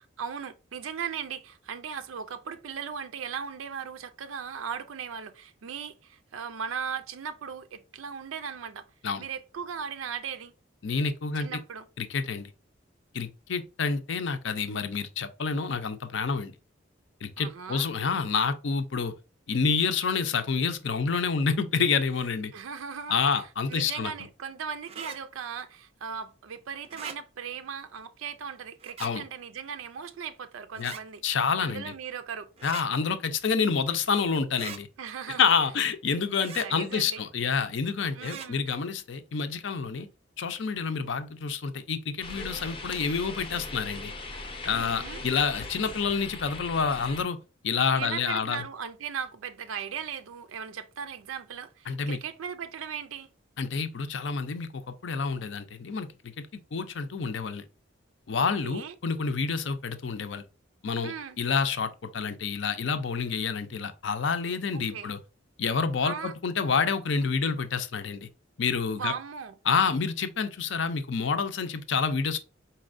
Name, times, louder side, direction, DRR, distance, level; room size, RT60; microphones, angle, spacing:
voice 1, 0.2-8.9 9.2-10.5 11.4-11.9 17.4-17.9 22.5-31.2 31.6-32.5 35.0-35.4 36.1-37.2 38.1-38.6 44.6-45.2 47.9-53.3 58.4-58.9 61.0-61.4 64.7-65.1 66.0-66.3 68.9-69.6, right 7 dB, 90° right, 0.4 m, -38 dB
voice 2, 10.8-11.6 12.0-12.5 13.1-16.5 17.2-19.1 19.5-22.5 23.1-24.1 29.0-29.2 30.8-30.9 31.2-31.8 32.6-34.9 35.4-40.1 40.4-44.1 44.6-47.4 47.6-48.6 51.9-52.2 53.6-56.4 56.7-57.6 58.3-60.4 60.8-65.2 65.6-68.3 68.6-69.1 69.7-72.4, left 5 dB, 65° left, 0.6 m, -28 dB
sound 1, 24.9-25.2 26.8-27.2 28.8-29.1 30.7-31.0 32.6-32.9 34.5-34.8 36.4-36.7 38.2-38.5, right 6 dB, 30° right, 0.4 m, -41 dB
sound 2, 42.2-47.2, left 3 dB, 25° left, 0.6 m, -39 dB
4.3 x 4.1 x 2.5 m
head